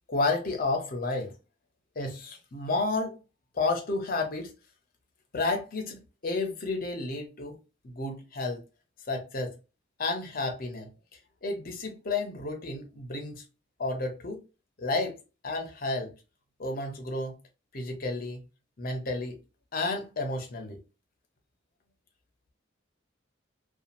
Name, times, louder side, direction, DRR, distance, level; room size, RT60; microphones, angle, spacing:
voice 1, 0.1-1.3 2.0-3.2 3.5-4.5 5.3-7.6 7.8-8.6 9.1-9.5 10.0-10.9 11.4-13.4 13.8-14.4 14.8-15.2 15.4-16.1 16.6-17.4 17.7-18.4 18.8-19.4 19.7-20.8, left 3 dB, 50° left, 0.7 m, -31 dB
2.7 x 2.4 x 2.5 m
head